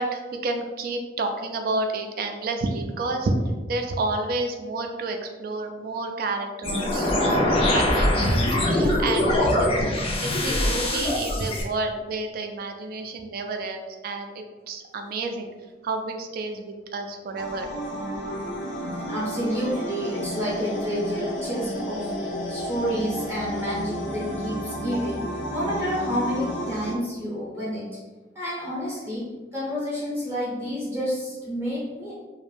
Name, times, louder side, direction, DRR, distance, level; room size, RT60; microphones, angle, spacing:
voice 1, 0.0-3.3 3.7-15.5 15.8-17.7, right 3 dB, 55° right, 5 dB, 0.3 m, -30 dB
sound 1, 6.6-11.6, left 1 dB, 35° left, 0.4 m, -22 dB
sound 2, 17.4-26.9, equal, 85° left, 0.5 m, -32 dB
voice 2, 19.1-25.2 25.5-28.0 28.3-32.1, equal, 15° right, -8 dB, 0.6 m, -29 dB
2.4 x 2.1 x 3.1 m, 1.3 s
head